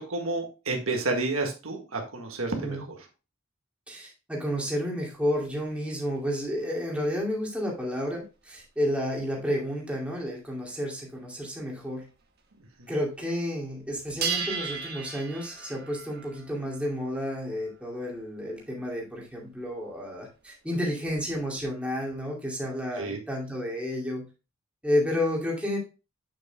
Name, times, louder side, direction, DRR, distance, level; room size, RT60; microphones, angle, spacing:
voice 1, 0.0-2.9 12.8-12.9 23.0-23.2, right 3 dB, 70° right, 3 dB, 1.8 m, -30 dB
voice 2, 3.9-12.1 12.9-24.3 24.8-25.8, equal, 5° right, -3 dB, 2.5 m, -31 dB
sound 1, 5.2-7.1 7.7-9.3 9.9-10.3 10.7-10.8 11.1-11.2 11.4-12.5 12.8-13.4 13.7-21.6, right 6 dB, 45° right, 1.6 m, -39 dB
8.4 x 7.7 x 2.3 m, 0.29 s
head